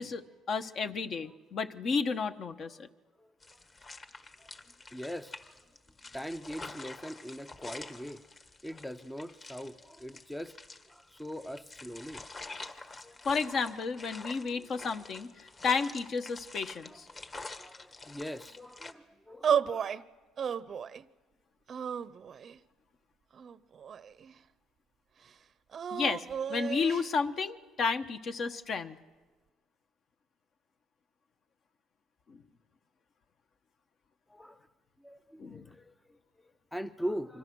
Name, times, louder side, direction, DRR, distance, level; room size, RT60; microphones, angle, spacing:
voice 1, 0.0-2.9 13.2-17.1 25.9-29.0 32.3-32.4 35.4-35.7, left 5 dB, 45° left, 8 dB, 1.2 m, -32 dB
voice 2, 2.6-2.9 3.2-3.6 4.4-4.5 4.9-5.6 6.1-8.2 8.6-10.5 10.9-12.2 13.0-13.3 14.4-14.9 15.4-15.5 16.7-20.0 34.3-34.7 35.0-37.4, equal, 5° left, 10 dB, 0.7 m, -42 dB
sound 1, 3.4-18.9, left 3 dB, 25° left, 1.5 m, -47 dB
sound 2, 19.4-20.0 20.4-21.0 21.7-22.6 23.3-24.3 25.7-27.1, right 8 dB, 40° right, 0.7 m, -33 dB
27.5 x 25.5 x 6.3 m, 1.3 s
cardioid pair, 125°, 0 cm